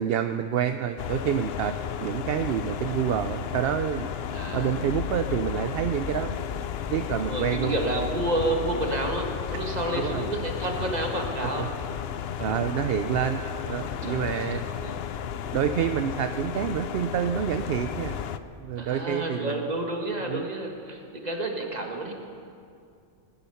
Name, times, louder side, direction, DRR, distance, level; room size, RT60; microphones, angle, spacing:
voice 1, 0.0-4.1 4.5-6.4 6.9-7.7 10.0-10.3 11.4-11.7 12.4-14.6 15.5-18.2 18.6-19.7 20.3-20.4, right 9 dB, 65° right, 9 dB, 0.7 m, -28 dB
sound 1, 1.0-18.4, left 8 dB, 65° left, 0.8 m, -33 dB
voice 2, 4.2-4.7 7.2-11.7 13.8-15.0 18.8-22.1, right 2 dB, 35° right, 2 dB, 1.8 m, -30 dB
20.0 x 12.0 x 5.7 m, 2.4 s
omnidirectional pair, 1.2 m